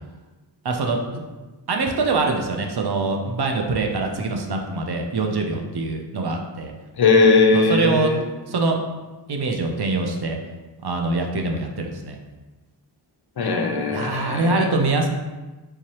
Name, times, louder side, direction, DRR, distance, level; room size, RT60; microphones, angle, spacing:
voice 1, 0.6-1.2 1.7-6.7 7.5-8.1 8.5-8.8 9.3-10.4 10.8-12.2 13.9-15.1, right 3 dB, 60° right, 3 dB, 0.5 m, -24 dB
voice 2, 7.0-8.2 13.4-14.7, left 4 dB, 60° left, 4 dB, 0.5 m, -19 dB
3.5 x 3.2 x 2.8 m, 1.2 s
wide cardioid pair, 60°, 44 cm